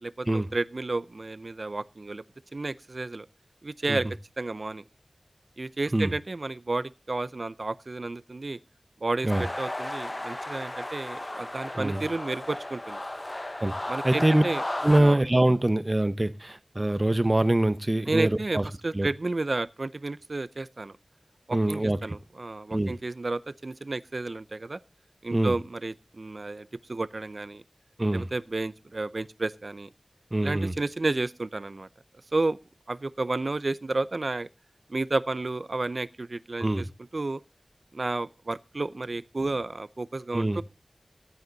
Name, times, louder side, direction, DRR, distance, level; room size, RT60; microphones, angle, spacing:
voice 1, 0.0-2.2 2.5-3.3 3.6-4.1 4.4-4.8 5.6-8.6 9.0-13.0 13.9-14.6 15.0-15.2 18.1-21.0 21.5-24.8 25.2-27.6 28.1-29.9 30.4-31.9 32.3-32.6 32.9-34.5 34.9-36.9 37.1-37.4 37.9-40.6, right 2 dB, 65° right, 0.5 m, -31 dB
sound 1, 9.3-15.0, left 1 dB, 30° left, 0.9 m, -34 dB
voice 2, 13.6-14.4 14.8-18.6 18.9-19.1 21.5-22.0 22.7-22.9 25.3-25.5 28.0-28.3 30.3-30.7 36.6-36.8 40.3-40.6, right 1 dB, 35° right, 0.9 m, -24 dB
14.0 x 9.7 x 3.9 m
wide cardioid pair, 50°, 0 cm